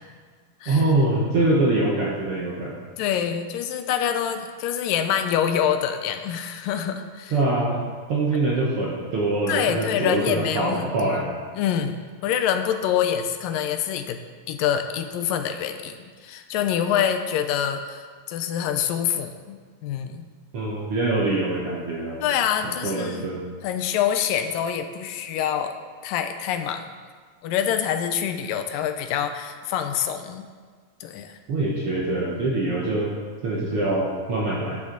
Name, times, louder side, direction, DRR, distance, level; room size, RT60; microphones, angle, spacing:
voice 1, 0.7-2.8 7.3-7.8 8.1-11.2 20.5-22.3 22.6-23.4 31.5-33.1 33.4-34.8, right 2 dB, 65° right, -3 dB, 1.5 m, -24 dB
voice 2, 3.0-7.3 9.5-14.2 14.5-20.3 22.2-23.3 23.6-25.7 26.0-26.9 27.4-30.5 31.0-31.4, left 9 dB, 85° left, 7 dB, 2.4 m, -26 dB
11.0 x 9.5 x 3.9 m, 1.5 s
omnidirectional pair, 3.9 m